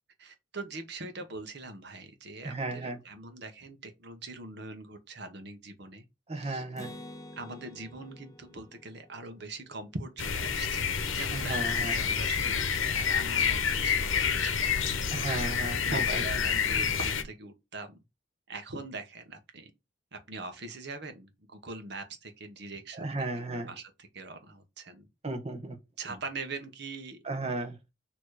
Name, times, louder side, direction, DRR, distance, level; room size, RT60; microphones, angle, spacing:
voice 1, 0.2-6.0 6.3-6.6 7.4-18.0 18.5-19.7 20.1-23.3 23.5-25.1 26.0-27.2, right 3 dB, 60° right, 1.0 m, -42 dB
voice 2, 2.4-3.0 6.3-6.9 11.3-12.0 15.1-16.2 23.0-23.7 25.2-25.8 27.2-27.8, right 2 dB, 30° right, 1.1 m, -34 dB
Acoustic guitar, 6.8-10.4, left 1 dB, 15° left, 0.6 m, -49 dB
sound 1, 10.2-17.2, left 6 dB, 85° left, 0.8 m, -28 dB
6.6 x 3.0 x 4.8 m
head